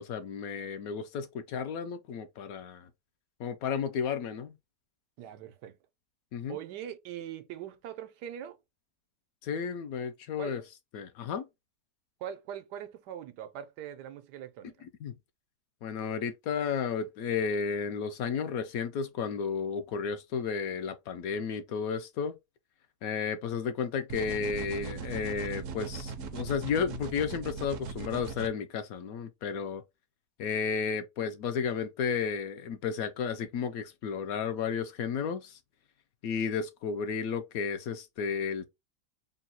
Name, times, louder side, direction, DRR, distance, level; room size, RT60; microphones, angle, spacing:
voice 1, 0.0-2.9 3.4-4.5 6.3-6.6 9.4-10.6 10.9-11.5 14.8-15.2 15.8-22.4 23.0-29.8 30.4-35.6 36.2-38.6, left 6 dB, 70° left, 0.9 m, -33 dB
voice 2, 5.2-5.8 6.5-8.6 10.4-10.5 12.2-14.7, right 10 dB, 85° right, 1.2 m, -41 dB
sound 1, 24.1-28.5, right 5 dB, 65° right, 0.8 m, -39 dB
3.8 x 2.2 x 4.1 m
omnidirectional pair, 1.8 m